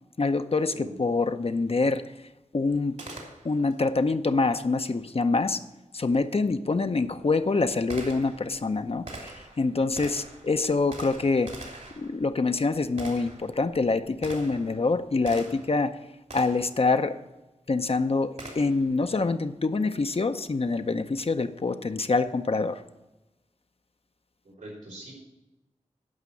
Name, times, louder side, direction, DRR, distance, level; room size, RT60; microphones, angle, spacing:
voice 1, 0.2-2.0 2.5-3.0 3.4-5.6 5.9-11.5 12.0-16.0 16.3-17.2 17.7-22.8, left 3 dB, 50° left, 9 dB, 0.7 m, -25 dB
Gunshot gunfire, 3.0-3.8 6.1-6.2 6.9-15.8 16.3-16.8 18.4-18.9, right 2 dB, 65° right, 3.0 m, -44 dB
voice 2, 24.4-25.1, right 1 dB, 90° right, -4 dB, 4.6 m, -42 dB
11.5 x 5.6 x 8.4 m, 1.0 s
cardioid pair, 40°, 13 cm